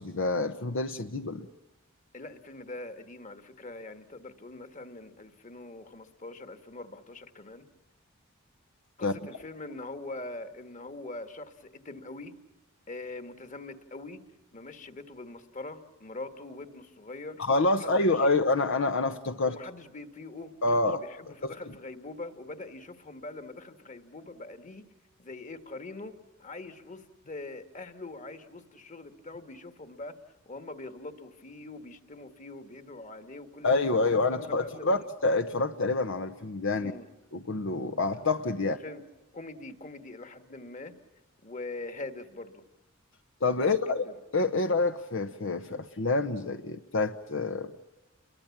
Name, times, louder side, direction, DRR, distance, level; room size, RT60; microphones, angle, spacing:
voice 1, 0.0-1.5 9.0-9.1 17.4-19.6 20.6-21.0 21.4-21.7 33.6-36.9 37.3-38.8 43.4-44.1 44.3-47.7, left 3 dB, 65° left, 7 dB, 1.0 m, -27 dB
voice 2, 2.1-7.7 9.0-12.3 12.9-14.2 14.5-17.4 17.8-18.4 19.4-24.8 25.2-26.1 26.4-30.1 30.5-35.1 36.8-37.1 38.6-39.0 39.3-40.9 41.4-42.6 43.6-44.2, left 2 dB, 35° left, 9 dB, 1.9 m, -43 dB
30.0 x 23.0 x 7.3 m, 1.1 s
head